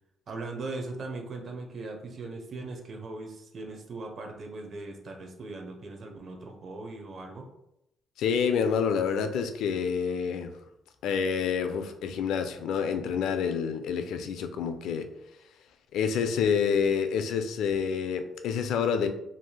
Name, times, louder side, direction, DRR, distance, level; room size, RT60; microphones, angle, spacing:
voice 1, 0.3-7.5, right 3 dB, 50° right, 3 dB, 0.6 m, -39 dB
voice 2, 8.2-10.5 11.0-15.1 15.9-19.1, left 6 dB, 80° left, 8 dB, 0.3 m, -28 dB
3.1 x 2.6 x 2.2 m, 0.82 s
cardioid pair, 90°, 0 cm